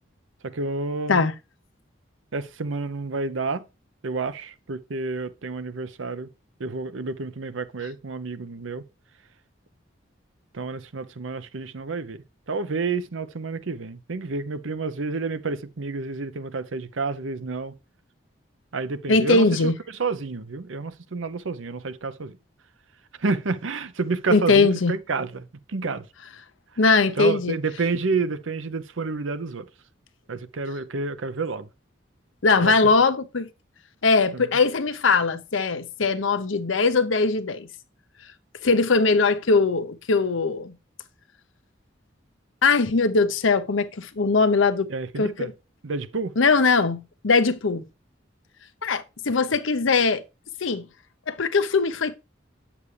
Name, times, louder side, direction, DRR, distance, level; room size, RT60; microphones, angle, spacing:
voice 1, 0.4-1.3 2.3-3.6 4.0-6.3 6.6-8.8 10.5-12.2 12.5-17.7 18.7-19.7 20.0-22.4 23.2-26.0 27.2-29.7 30.3-31.7 32.6-32.7 34.3-34.4 44.9-45.5 45.8-46.3, right 4 dB, 85° right, 0.7 m, -29 dB
voice 2, 19.1-19.7 24.3-24.9 26.8-27.6 32.4-33.5 34.0-37.7 38.6-40.8 42.6-44.9 45.2-45.5 46.4-47.8 48.8-50.2 50.6-50.9 51.3-52.2, left 4 dB, 85° left, 0.8 m, -21 dB
8.4 x 7.3 x 3.3 m
head